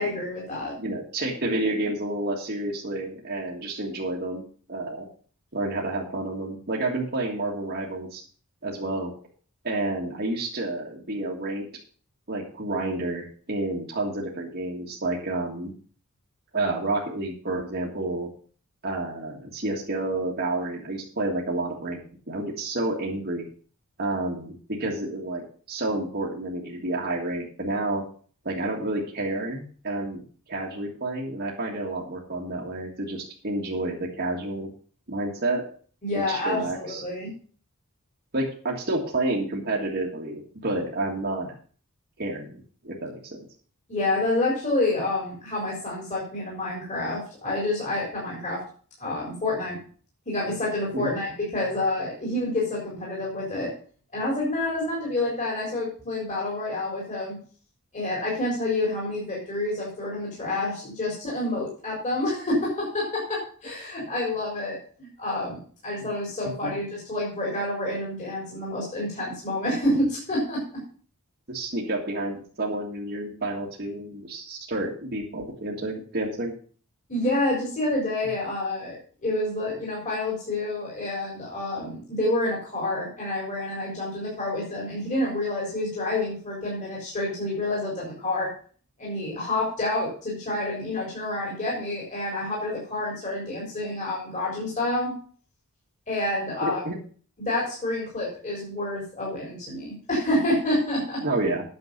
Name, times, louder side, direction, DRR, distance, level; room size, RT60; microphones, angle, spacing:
voice 1, 0.0-0.7 36.0-37.3 43.9-48.6 49.0-49.8 50.3-53.7 54.1-57.4 57.9-70.6 77.1-79.0 79.2-88.5 89.0-95.1 96.1-96.8 97.4-101.2, left 2 dB, 35° left, -4 dB, 4.2 m, -28 dB
voice 2, 0.8-4.4 4.7-5.1 5.5-8.2 8.6-9.1 9.6-11.7 12.3-15.7 16.5-18.3 18.8-22.0 22.3-23.5 24.0-28.0 28.5-30.2 30.5-34.7 35.1-35.6 36.1-37.0 38.3-41.5 42.2-43.4 50.9-51.1 66.6-66.7 71.5-76.5 96.6-96.9 101.2-101.6, right 2 dB, 45° right, -3 dB, 1.9 m, -29 dB
9.5 x 6.9 x 6.6 m, 0.43 s
head